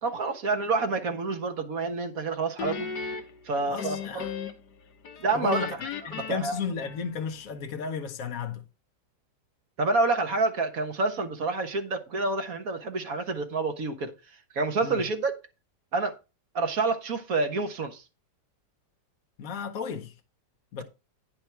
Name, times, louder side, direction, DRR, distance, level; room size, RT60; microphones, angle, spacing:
voice 1, 0.0-2.9 3.4-4.2 5.2-5.8 6.2-6.6 9.8-14.1 14.5-15.4 15.9-16.2 16.5-18.0, right 3 dB, 55° right, 1.7 m, -28 dB
Guitar, 2.6-4.7 5.0-7.4, left 6 dB, 75° left, 1.6 m, -37 dB
voice 2, 3.7-4.3 5.3-5.8 6.0-8.6 14.8-15.0 19.4-20.1 20.7-20.8, left 6 dB, 55° left, 1.4 m, -33 dB
9.9 x 5.9 x 4.5 m
omnidirectional pair, 1.8 m